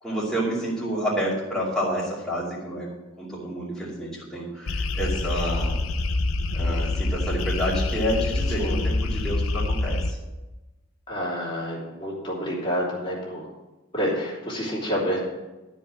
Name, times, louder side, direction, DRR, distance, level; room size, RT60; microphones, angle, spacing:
voice 1, 0.0-2.9 3.2-5.8 6.5-10.2, equal, 5° left, -9 dB, 2.6 m, -29 dB
sound 1, 4.7-10.1, left 2 dB, 85° left, 0.8 m, -26 dB
voice 2, 11.1-13.5 13.9-15.2, equal, 25° left, -5 dB, 3.0 m, -28 dB
12.5 x 5.4 x 7.5 m, 1.1 s
head